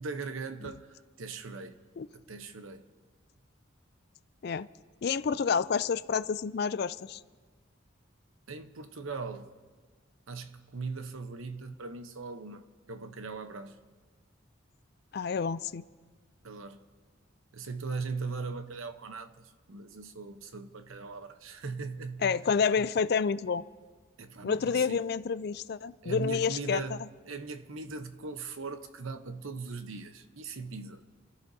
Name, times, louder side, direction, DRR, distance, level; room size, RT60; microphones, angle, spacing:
voice 1, 0.0-1.8 2.1-2.9 8.5-9.5 10.3-13.8 16.4-16.9 17.5-22.5 22.8-22.9 24.2-25.0 26.0-31.0, right 4 dB, 85° right, 0.8 m, -39 dB
voice 2, 5.0-7.2 15.1-15.8 22.2-23.6 24.4-26.8, left 6 dB, 50° left, 0.4 m, -29 dB
28.5 x 14.0 x 2.7 m
head